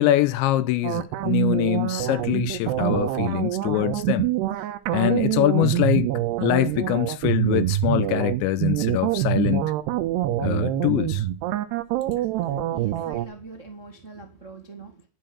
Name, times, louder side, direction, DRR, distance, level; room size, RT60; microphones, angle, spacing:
voice 1, 0.0-4.2 4.9-6.1 6.4-9.6 10.4-11.2, left 14 dB, 80° left, 2.9 m, -23 dB
sound 1, 0.8-13.2, right 14 dB, 75° right, 2.7 m, -25 dB
voice 2, 12.7-15.1, right 4 dB, 40° right, 1.0 m, -42 dB
11.5 x 10.5 x 6.1 m
omnidirectional pair, 5.3 m